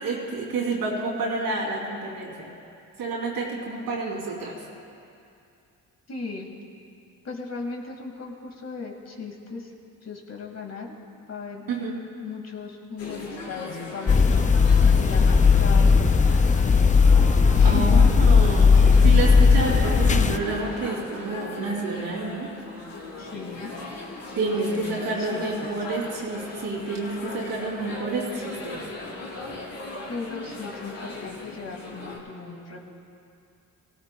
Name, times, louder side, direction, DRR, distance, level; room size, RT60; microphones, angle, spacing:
voice 1, 0.0-2.5 3.0-4.6 11.7-12.0 17.6-22.5 24.3-28.8, right 3 dB, 90° right, -3 dB, 3.2 m, -29 dB
voice 2, 6.1-6.5 7.2-9.7 10.0-10.9 11.3-11.6 12.2-16.4 17.5-18.0 23.2-23.7 24.4-25.7 30.1-32.9, left 4 dB, 50° left, 1 dB, 2.1 m, -37 dB
sound 1, 13.0-32.2, left 2 dB, 80° left, 2.5 m, -38 dB
sound 2, 14.1-20.4, left 5 dB, 20° left, 0.5 m, -17 dB
17.5 x 17.0 x 2.3 m, 2.6 s
cardioid pair, 75°, 34 cm